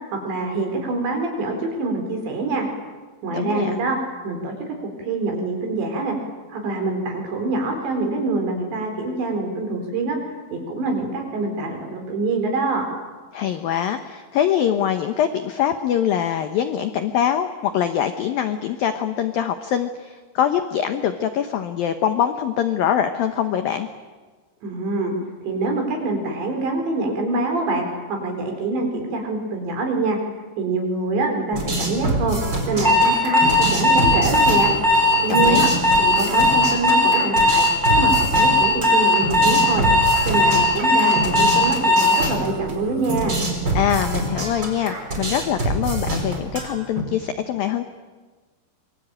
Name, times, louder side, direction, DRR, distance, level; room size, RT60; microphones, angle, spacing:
voice 1, 0.1-2.7 3.2-4.0 4.2-4.5 5.0-6.2 6.5-10.2 10.5-12.8 24.6-25.1 25.4-30.2 30.6-32.4 32.7-34.7 35.2-35.7 36.0-39.9 40.2-43.4, right 3 dB, 60° right, 3 dB, 6.4 m, -25 dB
voice 2, 3.3-3.7 13.3-23.9 35.3-35.7 43.7-47.8, left 9 dB, 80° left, 8 dB, 2.1 m, -23 dB
sound 1, 31.5-47.0, right 2 dB, 20° right, 4.6 m, -26 dB
Alarm, 32.8-42.2, left 2 dB, 5° right, 7.2 m, -17 dB
26.0 x 24.5 x 8.9 m, 1.3 s
omnidirectional pair, 5.7 m